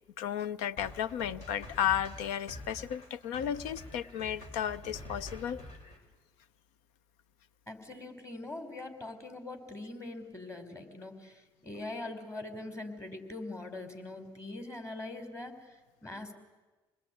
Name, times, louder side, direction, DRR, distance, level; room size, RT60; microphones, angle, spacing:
voice 1, 0.2-5.6, left 9 dB, 75° left, 16 dB, 0.8 m, -33 dB
sound 1, 0.8-6.0, left 1 dB, 55° left, 5.9 m, -47 dB
voice 2, 7.7-16.3, left 2 dB, 20° left, 6 dB, 5.2 m, -42 dB
26.5 x 20.5 x 9.6 m, 1.2 s
hypercardioid pair, 55°, 13 cm